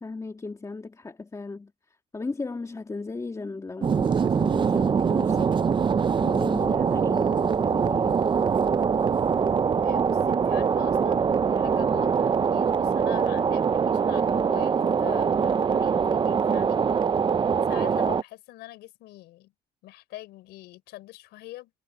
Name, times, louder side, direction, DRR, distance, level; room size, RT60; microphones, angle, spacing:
voice 1, 0.0-5.5 6.2-8.3, left 3 dB, 20° left, 2.4 m, -36 dB
sound 1, 3.8-18.2, right 6 dB, 30° right, 0.6 m, -23 dB
voice 2, 9.8-16.8 17.7-19.5 19.8-21.7, left 16 dB, 85° left, 4.5 m, -43 dB
cardioid pair, 110°, 17 cm